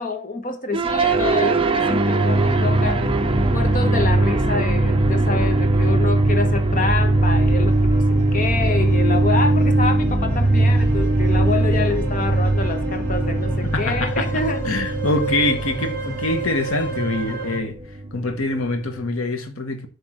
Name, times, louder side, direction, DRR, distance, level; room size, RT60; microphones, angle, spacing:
voice 1, 0.0-3.0 3.5-8.0 8.3-14.6, left 3 dB, 40° left, 1.2 m, -27 dB
sound 1, 0.7-19.0, right 2 dB, 25° right, 0.6 m, -20 dB
sound 2, 2.3-17.6, equal, 10° left, 2.5 m, -30 dB
voice 2, 13.7-14.3 14.6-17.8 18.1-19.9, left 2 dB, 85° left, 1.1 m, -24 dB
7.8 x 3.6 x 6.1 m
head